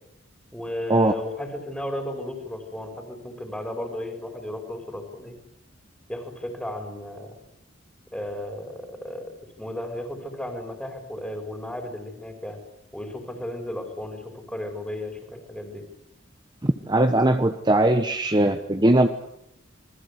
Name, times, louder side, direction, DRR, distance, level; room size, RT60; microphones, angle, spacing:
voice 1, 0.5-5.3 6.1-7.4 8.1-9.2 9.6-12.6 12.9-15.8, left 1 dB, 5° left, 3 dB, 4.5 m, -34 dB
voice 2, 16.6-19.1, right 1 dB, 20° right, 7 dB, 1.1 m, -20 dB
27.0 x 21.0 x 8.3 m, 0.77 s
head